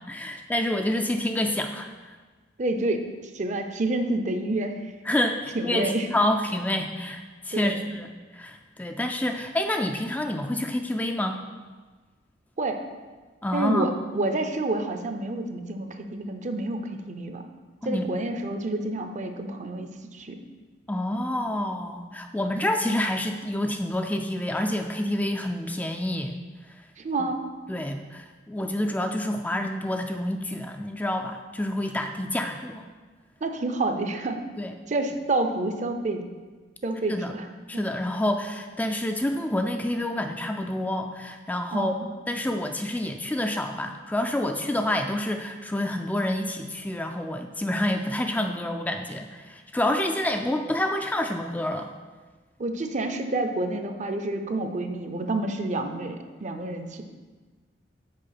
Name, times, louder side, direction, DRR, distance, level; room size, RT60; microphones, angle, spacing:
voice 1, 0.1-1.9 5.1-11.4 13.4-13.9 17.8-18.0 20.9-26.4 27.7-32.9 34.6-34.7 37.1-37.3 37.7-41.9 42.3-51.9, left 1 dB, 10° left, 4 dB, 0.3 m, -28 dB
voice 2, 2.6-3.1 3.3-4.9 5.5-6.1 7.5-7.9 12.6-12.8 13.5-17.4 17.8-20.4 27.0-27.5 33.4-34.4 34.9-36.2 36.8-37.5 37.7-37.8 41.7-42.1 52.6-57.0, right 2 dB, 40° right, 7 dB, 0.6 m, -28 dB
6.4 x 4.6 x 5.8 m, 1.4 s
head